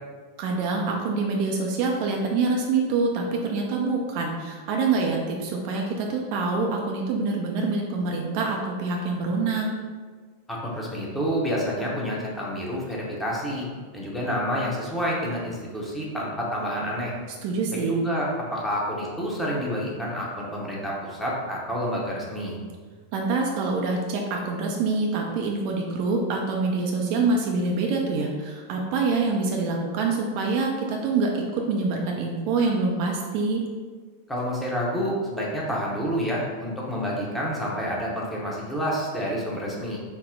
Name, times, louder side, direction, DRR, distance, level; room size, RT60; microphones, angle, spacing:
voice 1, 0.4-9.8 17.4-17.9 23.1-33.6, right 3 dB, 45° right, 0 dB, 0.4 m, -25 dB
voice 2, 10.5-13.7 13.9-17.1 17.9-22.6 34.3-40.0, equal, 5° left, -4 dB, 0.9 m, -28 dB
4.0 x 2.1 x 3.8 m, 1.5 s
figure-of-eight pair, 90°, 0 cm